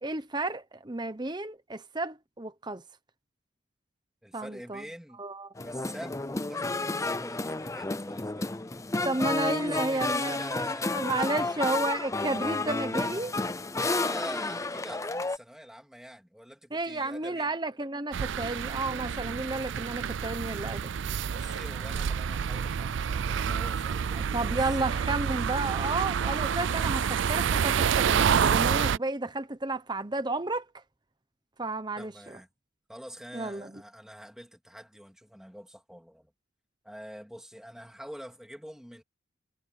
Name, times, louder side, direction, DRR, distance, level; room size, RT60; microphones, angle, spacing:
voice 1, 0.0-2.8 4.3-4.8 5.2-5.5 9.0-10.4 10.9-13.3 16.7-20.9 24.1-30.6 31.6-32.1 33.3-33.8, right 2 dB, 20° right, 0.9 m, -32 dB
voice 2, 4.2-5.2 5.6-8.5 9.5-11.7 13.8-17.5 21.3-25.4 32.0-32.5 32.9-36.3 36.8-39.0, equal, 5° right, 2.6 m, -45 dB
sound 1, 5.6-15.4, left 3 dB, 15° left, 0.6 m, -31 dB
sound 2, 18.1-29.0, right 7 dB, 65° right, 0.4 m, -28 dB
head